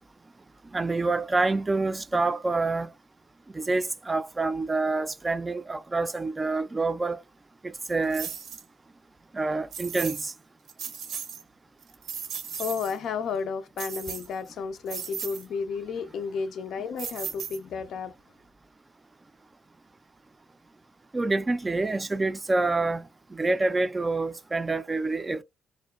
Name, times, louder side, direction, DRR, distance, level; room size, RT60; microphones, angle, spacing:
voice 1, 0.7-2.9 3.5-7.2 7.6-8.3 9.3-10.3 21.1-25.4, right 3 dB, 25° right, 0.3 m, -27 dB
sound 1, 8.1-8.6 9.7-10.3 10.7-11.4 11.8-13.0 13.8-14.5 14.9-15.4 17.0-17.8, right 7 dB, 70° right, 0.6 m, -36 dB
voice 2, 12.6-18.1, left 5 dB, 70° left, 0.3 m, -32 dB
2.6 x 2.1 x 2.4 m
cardioid pair, 75°, 0 cm